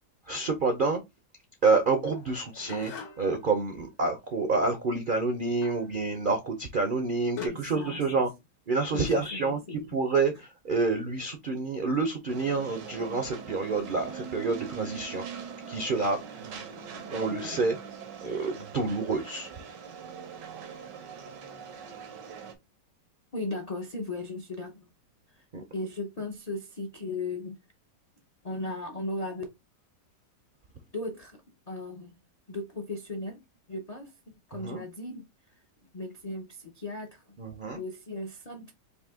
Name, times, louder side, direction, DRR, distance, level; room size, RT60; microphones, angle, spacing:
voice 1, 0.3-1.0 1.6-8.3 8.7-17.8 18.2-19.5 25.5-25.6 34.5-34.8 37.4-37.8, right 3 dB, 65° right, 0.5 m, -28 dB
sound 1, 2.0-3.4 5.6-5.9 6.9-7.0 7.4-7.5, left 7 dB, 90° left, 1.5 m, -42 dB
voice 2, 7.3-8.1 8.9-10.0 17.3-17.6 23.3-24.9 25.3-25.5 25.7-27.5 28.4-29.4 30.9-31.4 31.7-32.2 32.5-33.4 33.7-34.1 34.5-35.2 35.9-37.4 37.7-38.7, left 2 dB, 60° left, 0.4 m, -37 dB
sound 2, 12.3-22.6, right 7 dB, 85° right, 1.6 m, -42 dB
4.1 x 2.7 x 3.5 m
omnidirectional pair, 1.8 m